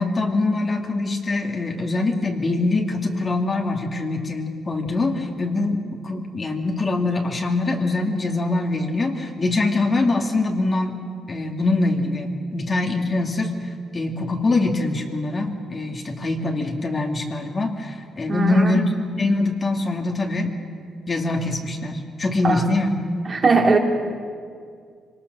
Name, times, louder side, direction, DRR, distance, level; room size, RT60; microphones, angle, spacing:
voice 1, 0.0-11.0 11.3-13.5 13.9-18.8 19.2-20.5 21.1-22.9, left 2 dB, 35° left, 2 dB, 2.3 m, -23 dB
voice 2, 18.3-18.8 22.4-22.6 23.3-23.8, right 4 dB, 35° right, 1 dB, 2.7 m, -19 dB
24.5 x 19.0 x 6.7 m, 2.2 s
cardioid pair, 90°, 0 cm